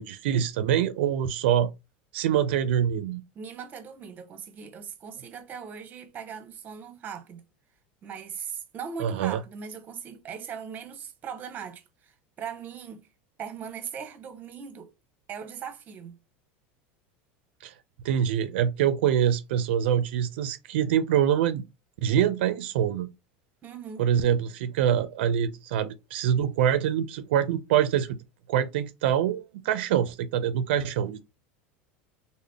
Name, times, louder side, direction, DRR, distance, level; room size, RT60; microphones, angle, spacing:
voice 1, 0.0-1.7 2.1-3.2 9.0-9.4 17.6-17.7 18.0-21.6 22.0-23.1 24.0-28.2 28.5-31.2, right 9 dB, 85° right, 0.4 m, -25 dB
voice 2, 3.3-7.4 8.0-13.0 13.4-14.9 15.3-16.2 23.6-24.1, right 7 dB, 30° right, 0.7 m, -39 dB
3.6 x 2.1 x 3.4 m
supercardioid pair, 135°, 6 cm